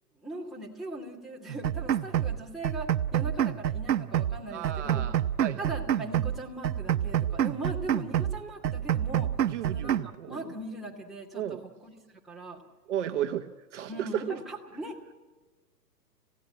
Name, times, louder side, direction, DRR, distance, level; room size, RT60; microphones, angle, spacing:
voice 1, 0.2-5.1 5.6-9.3 9.6-11.9 12.3-12.6 13.9-15.1, right 1 dB, ahead, -4 dB, 2.6 m, -40 dB
sound 1, 1.5-2.4 2.6-4.4 4.6-6.4 6.6-8.4 8.6-10.1, right 10 dB, 85° right, 1.0 m, -28 dB
voice 2, 4.5-5.6 9.4-10.3 11.3-11.6 12.9-13.4 13.7-13.9, right 10 dB, 45° right, 6 dB, 1.1 m, -34 dB
30.0 x 16.5 x 9.1 m, 1.3 s
hypercardioid pair, 155°, 49 cm